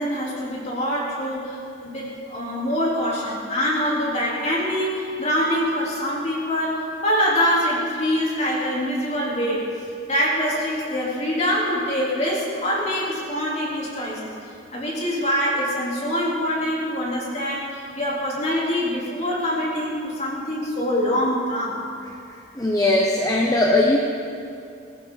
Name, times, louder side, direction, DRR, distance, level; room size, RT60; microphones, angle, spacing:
voice 1, 0.0-9.6 10.1-14.3 14.7-21.8, equal, 35° left, -5 dB, 3.9 m, -24 dB
voice 2, 22.6-24.0, left 2 dB, 20° left, 0 dB, 1.0 m, -19 dB
22.5 x 13.5 x 4.2 m, 2.5 s
head